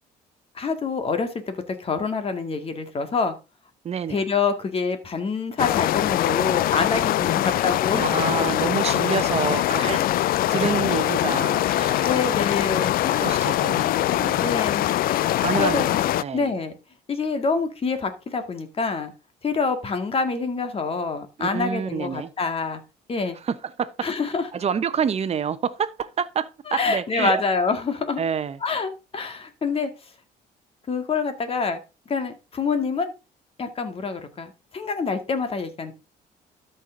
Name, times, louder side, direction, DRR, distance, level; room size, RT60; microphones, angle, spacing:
voice 1, 0.6-3.3 4.1-8.1 9.8-10.0 12.1-13.4 14.4-16.7 17.1-19.1 19.4-22.8 23.1-23.4 24.0-24.5 26.7-28.2 28.6-29.9 30.9-31.8 32.1-33.1 33.6-35.9, left 4 dB, 35° left, 2.0 m, -26 dB
voice 2, 3.8-4.2 8.0-12.3 13.1-14.5 15.4-15.8 16.2-16.5 21.4-22.3 23.5-24.1 24.5-27.4 28.2-28.6, right 7 dB, 40° right, 1.0 m, -28 dB
sound 1, 5.6-16.2, left 14 dB, 60° left, 0.4 m, -22 dB
13.0 x 5.8 x 3.9 m
cardioid pair, 110°, 17 cm